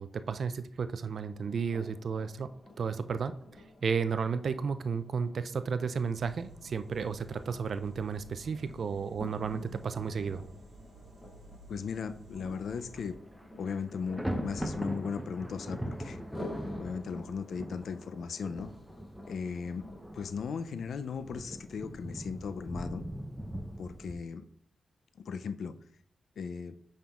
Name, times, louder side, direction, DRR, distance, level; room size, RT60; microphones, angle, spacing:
voice 1, 0.0-3.4 3.8-10.4, right 6 dB, 70° right, 11 dB, 0.4 m, -33 dB
sound 1, 1.1-20.3, left 1 dB, 25° left, 1.9 m, -50 dB
sound 2, 6.0-13.1, right 1 dB, 90° right, 1.3 m, -54 dB
voice 2, 11.7-13.1 13.6-16.2 16.8-18.7 19.3-19.8 20.1-23.0 23.8-24.4 25.3-25.7 26.4-26.7, left 6 dB, 80° left, 11 dB, 0.4 m, -37 dB
Thunder, 12.7-13.0 13.3-24.1, equal, 5° right, 0.8 m, -41 dB
8.6 x 5.6 x 2.4 m, 0.64 s
cardioid pair, 60°, 0 cm